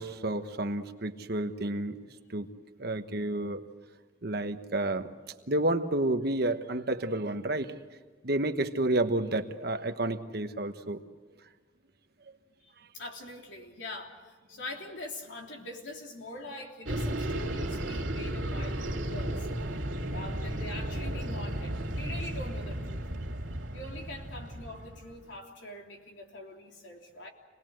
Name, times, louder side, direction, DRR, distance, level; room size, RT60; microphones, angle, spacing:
voice 1, 0.0-2.0 2.3-2.5 2.8-3.6 4.2-5.1 5.5-7.7 8.2-11.0, right 2 dB, 55° right, 7 dB, 1.2 m, -30 dB
voice 2, 12.6-19.5 20.1-23.0 23.7-27.3, left 1 dB, 70° left, 1 dB, 3.4 m, -43 dB
sound 1, 16.9-25.2, right 1 dB, 80° right, 2.9 m, -34 dB
27.5 x 19.5 x 7.8 m, 1.4 s
head